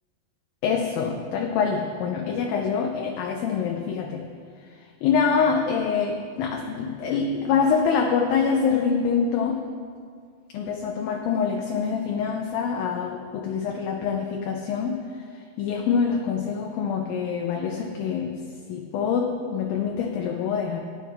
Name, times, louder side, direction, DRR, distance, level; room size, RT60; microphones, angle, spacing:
voice 1, 0.6-4.3 5.0-9.6 10.5-15.0 15.6-18.4 18.7-20.8, left 6 dB, 75° left, 2 dB, 2.3 m, -25 dB
16.5 x 10.0 x 3.3 m, 2.1 s
omnidirectional pair, 4.5 m